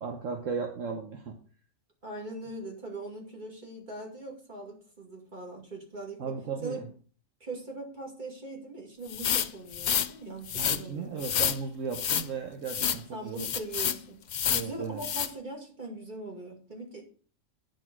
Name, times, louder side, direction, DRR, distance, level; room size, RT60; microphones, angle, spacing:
voice 1, 0.0-1.3 6.2-6.8 10.5-13.5 14.5-15.0, right 5 dB, 70° right, 3 dB, 1.4 m, -36 dB
voice 2, 2.0-6.4 6.6-6.9 7.4-11.2 13.1-14.3 14.6-17.0, right 2 dB, 35° right, 0 dB, 2.6 m, -41 dB
sound 1, 9.1-10.1 10.5-10.8 11.2-11.6 11.9-12.3 12.7-13.0 13.4-14.0 14.3-14.7 15.0-15.3, left 9 dB, 90° left, 0.4 m, -28 dB
9.8 x 4.9 x 6.1 m, 0.42 s
omnidirectional pair, 1.4 m